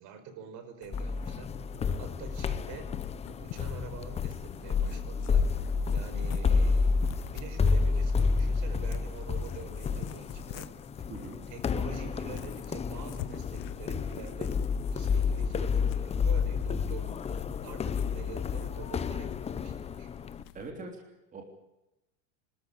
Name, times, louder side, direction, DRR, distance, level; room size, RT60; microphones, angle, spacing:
voice 1, 0.0-1.5 2.0-2.9 3.3-5.4 5.9-10.7 11.5-14.6 14.9-20.1, right 6 dB, 55° right, 8 dB, 5.0 m, -46 dB
sound 1, 0.8-20.7, left 14 dB, 60° left, 1.4 m, -48 dB
sound 2, 0.9-20.4, left 5 dB, 20° left, 0.9 m, -30 dB
voice 2, 11.1-11.4 20.5-21.4, right 3 dB, 20° right, 2 dB, 3.5 m, -43 dB
25.5 x 13.5 x 9.9 m, 0.93 s
cardioid pair, 150°, 35 cm